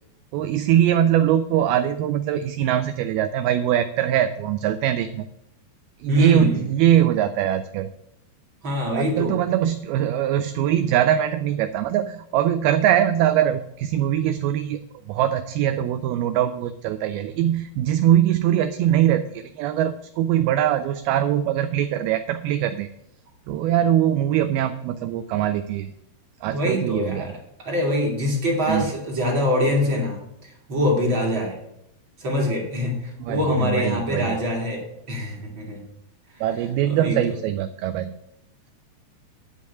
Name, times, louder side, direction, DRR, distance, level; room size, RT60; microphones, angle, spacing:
voice 1, 0.3-5.3 6.0-7.9 8.9-14.8 15.1-22.9 23.5-25.9 26.4-27.3 28.7-28.9 33.2-34.4 36.4-38.2, right 11 dB, 80° right, 10 dB, 2.2 m, -22 dB
voice 2, 6.1-6.6 8.6-9.4 26.5-30.2 30.7-31.6 32.2-35.8 36.4-36.5 36.9-37.4, left 1 dB, 35° right, -2 dB, 2.3 m, -24 dB
11.0 x 5.3 x 8.2 m, 0.82 s
omnidirectional pair, 4.8 m